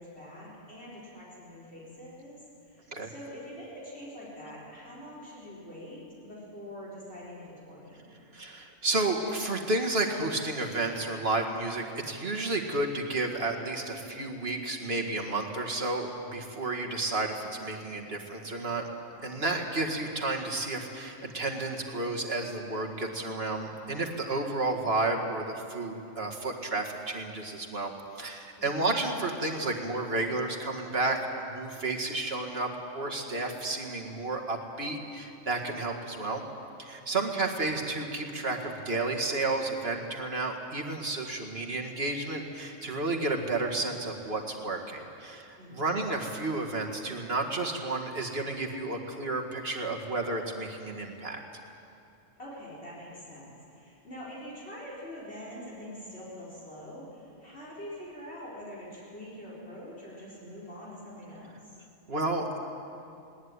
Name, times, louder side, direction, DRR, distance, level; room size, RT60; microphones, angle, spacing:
voice 1, 0.0-8.2 19.1-19.6 28.6-29.1 37.1-37.2 45.6-45.9 52.4-61.8, equal, 50° left, -6 dB, 4.8 m, -45 dB
voice 2, 8.3-18.9 19.2-27.9 28.2-36.4 36.8-51.4 62.1-62.6, right 2 dB, 50° right, 1 dB, 2.1 m, -31 dB
20.0 x 19.0 x 9.7 m, 2.7 s
omnidirectional pair, 1.4 m